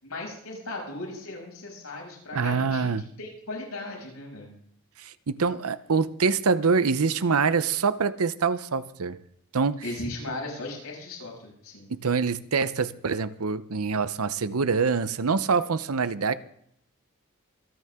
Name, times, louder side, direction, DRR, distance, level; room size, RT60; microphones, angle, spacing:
voice 1, 0.0-2.9 3.2-4.5 9.8-11.9, left 2 dB, 90° left, 6.8 m, -37 dB
voice 2, 2.3-3.1 5.0-9.2 9.5-9.8 11.9-16.3, right 5 dB, 85° right, 0.8 m, -25 dB
26.0 x 9.4 x 3.7 m
head